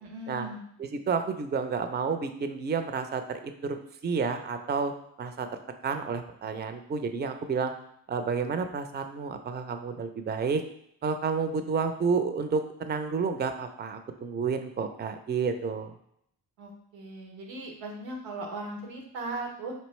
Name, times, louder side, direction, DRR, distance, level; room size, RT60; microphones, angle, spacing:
voice 1, 0.0-0.6 16.6-19.7, right 2 dB, 85° right, 2 dB, 0.9 m, -38 dB
voice 2, 0.8-3.8 4.0-4.9 5.2-5.5 5.8-7.7 8.1-10.6 11.0-15.9, right 5 dB, 25° right, 8 dB, 0.4 m, -30 dB
4.3 x 2.8 x 3.1 m, 0.73 s
supercardioid pair, 40°, 44 cm